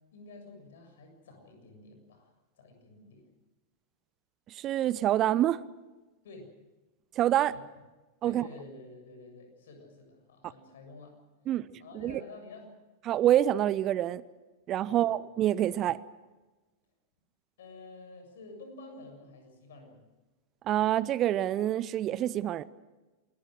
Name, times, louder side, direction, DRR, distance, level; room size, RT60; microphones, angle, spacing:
voice 1, 0.1-3.2 6.2-6.5 7.5-7.6 8.2-11.2 11.8-12.7 14.8-15.1 17.6-20.0, left 3 dB, 60° left, 5 dB, 7.2 m, -50 dB
voice 2, 4.5-5.6 7.2-7.5 8.2-8.4 11.5-11.7 12.0-12.1 13.1-14.2 14.7-16.0 20.7-22.6, right 12 dB, 35° right, 20 dB, 0.7 m, -26 dB
27.5 x 21.0 x 6.5 m, 1.2 s
figure-of-eight pair, 90°, 0 cm